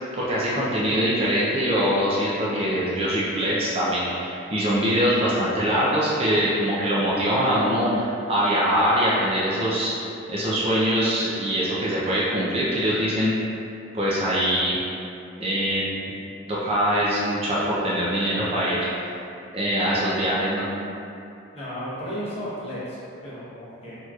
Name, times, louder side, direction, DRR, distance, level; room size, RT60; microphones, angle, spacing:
voice 1, 0.2-9.9 10.3-13.3 13.9-14.8 15.4-15.9 16.5-18.8 19.5-20.6, equal, 30° right, -8 dB, 0.5 m, -23 dB
voice 2, 21.5-24.0, equal, 30° left, -10 dB, 1.0 m, -34 dB
4.4 x 2.9 x 2.3 m, 2.6 s
head